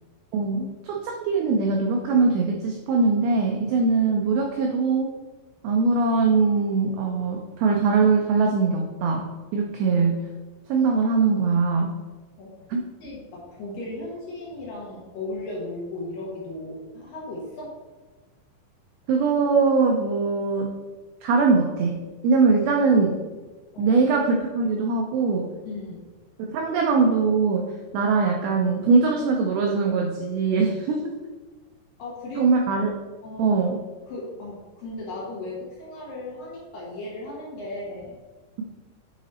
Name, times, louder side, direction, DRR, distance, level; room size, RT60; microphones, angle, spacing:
voice 1, 0.3-5.1 5.6-9.3 9.5-10.2 10.7-11.9 12.7-12.8 19.1-20.7 21.2-22.0 22.2-23.2 23.8-25.5 26.5-27.6 27.9-31.1 32.4-32.9 33.4-33.8, right 4 dB, 90° right, 1 dB, 2.1 m, -21 dB
voice 2, 13.0-17.8 23.7-24.0 25.7-26.1 32.0-32.5 33.2-33.6 34.1-38.1, left 2 dB, 65° left, -4 dB, 2.4 m, -36 dB
8.8 x 4.1 x 4.2 m, 1.3 s
omnidirectional pair, 5.2 m